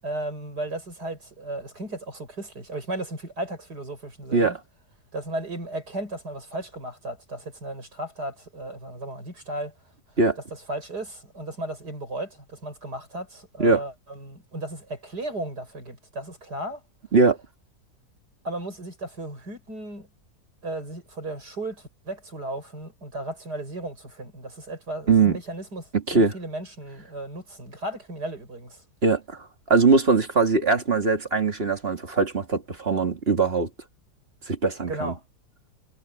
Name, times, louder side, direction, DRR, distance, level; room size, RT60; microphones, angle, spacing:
voice 1, 0.0-4.6 5.1-9.7 10.5-16.8 18.4-20.1 20.6-28.8 34.9-35.2, right 1 dB, 85° right, 8.5 m, -35 dB
voice 2, 25.1-25.4 26.1-26.3 29.0-29.4 29.7-33.7 34.5-35.1, right 4 dB, 40° right, 2.3 m, -21 dB
omnidirectional pair, 1.7 m